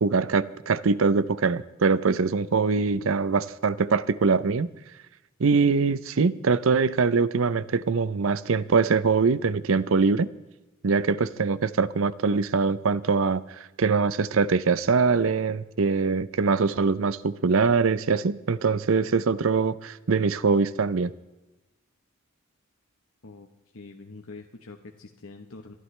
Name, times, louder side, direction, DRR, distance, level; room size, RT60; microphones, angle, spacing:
voice 1, 0.0-4.7 5.4-10.3 10.8-21.1, right 4 dB, 65° right, 0.6 m, -23 dB
voice 2, 23.7-25.7, left 3 dB, 70° left, 1.1 m, -44 dB
27.0 x 11.0 x 3.2 m
head